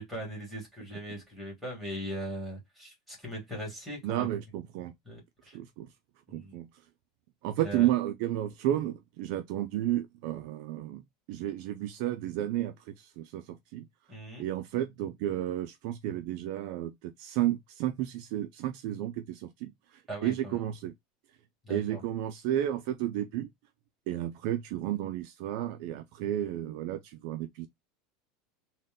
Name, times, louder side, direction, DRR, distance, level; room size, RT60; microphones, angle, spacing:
voice 1, 0.0-4.3 5.0-5.2 5.4-5.6 6.3-6.6 7.6-7.9 14.1-14.5 20.1-20.6 21.6-22.0, equal, ahead, 1.6 m, -39 dB
voice 2, 4.0-4.9 5.5-5.9 6.3-6.7 7.4-11.0 11.3-13.9 14.4-20.9 21.7-23.5 24.1-27.7, right 12 dB, 45° right, 0.3 m, -32 dB
4.0 x 2.1 x 3.6 m
supercardioid pair, 180°, 3 cm